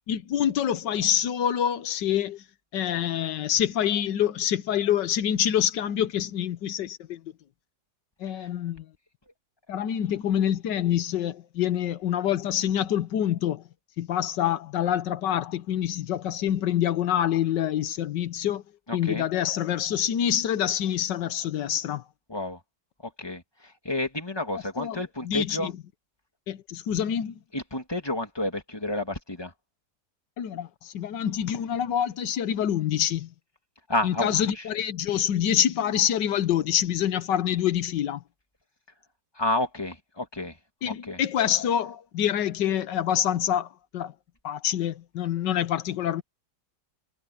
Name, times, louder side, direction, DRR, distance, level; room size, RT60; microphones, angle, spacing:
voice 1, 0.1-2.4 2.7-7.2 8.2-8.9 9.7-13.6 14.0-18.6 18.9-22.0 24.5-25.7 26.5-27.4 30.4-33.3 34.0-38.2 40.8-44.1 44.4-46.2, left 10 dB, 85° left, 1.6 m, -26 dB
voice 2, 18.9-19.3 22.3-22.6 23.2-23.4 23.8-25.7 27.5-29.5 33.9-34.6 39.4-40.5 41.1-41.2, left 2 dB, 15° left, 2.9 m, -30 dB
omnidirectional pair, 1.9 m